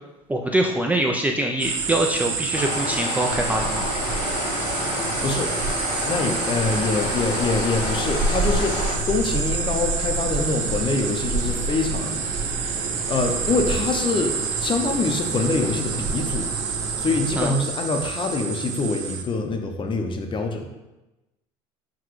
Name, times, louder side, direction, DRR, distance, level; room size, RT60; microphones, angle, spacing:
voice 1, 0.3-3.9 17.4-17.5, right 1 dB, 10° right, 1 dB, 0.3 m, -24 dB
sound 1, 1.6-19.2, right 6 dB, 85° right, 0.5 m, -29 dB
sound 2, 2.5-9.0, left 4 dB, 70° left, 0.7 m, -29 dB
sound 3, 3.3-17.4, right 2 dB, 25° right, 1.2 m, -31 dB
voice 2, 5.2-5.5 6.1-12.8 13.1-14.3 14.6-16.5 16.8-20.7, left 3 dB, 35° left, 4 dB, 0.6 m, -25 dB
5.9 x 2.2 x 3.1 m, 1.0 s
supercardioid pair, 100°, 15 cm